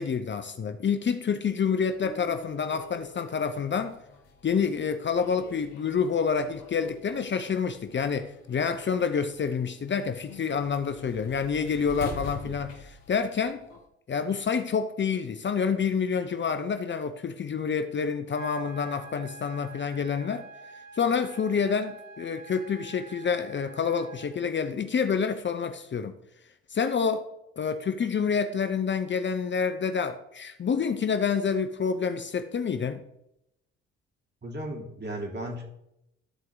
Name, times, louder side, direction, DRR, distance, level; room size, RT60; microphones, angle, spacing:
voice 1, 0.0-4.0 4.4-13.6 14.1-20.4 20.9-26.1 26.7-27.3 27.6-33.0, left 6 dB, 40° left, 9 dB, 0.8 m, -28 dB
sound 1, 1.9-13.9, left 4 dB, 80° left, 1.4 m, -46 dB
sound 2, 18.4-24.3, right 4 dB, 65° right, 1.1 m, -47 dB
voice 2, 34.4-35.6, right 1 dB, 35° right, -1 dB, 3.5 m, -35 dB
13.5 x 4.6 x 3.9 m, 0.82 s
hypercardioid pair, 50°, 30 cm